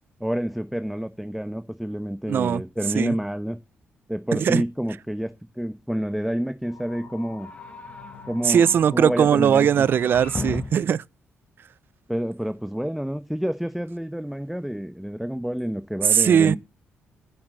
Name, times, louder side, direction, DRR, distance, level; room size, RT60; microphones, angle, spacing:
voice 1, 0.2-3.6 4.1-7.5 8.3-8.6 8.9-9.9 12.1-16.6, equal, 5° right, 1.1 m, -28 dB
voice 2, 2.3-2.6 2.9-3.1 4.3-4.6 8.4-11.0 16.1-16.6, right 8 dB, 60° right, 0.5 m, -19 dB
sound 1, 6.6-10.6, left 5 dB, 65° left, 3.4 m, -44 dB
sound 2, 7.4-8.3 9.7-11.0, left 4 dB, 30° left, 1.0 m, -35 dB
10.0 x 7.2 x 7.7 m
cardioid pair, 80°, 4 cm